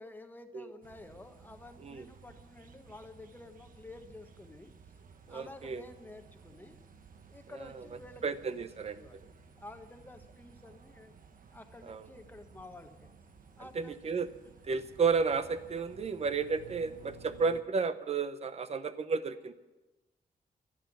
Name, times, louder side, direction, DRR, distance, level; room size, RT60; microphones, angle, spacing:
voice 1, 0.0-4.7 5.3-6.8 7.3-8.2 8.6-8.7 9.0-11.1 11.5-13.1 13.6-14.0, left 2 dB, 10° left, 6 dB, 1.2 m, -51 dB
sound 1, 0.8-17.6, right 5 dB, 60° right, 1.2 m, -56 dB
voice 2, 5.3-5.8 7.6-7.8 8.2-9.2 11.9-12.0 13.7-14.3 14.6-19.5, right 5 dB, 40° right, 12 dB, 0.8 m, -32 dB
12.0 x 11.0 x 9.3 m, 1.1 s
wide cardioid pair, 150°, 16 cm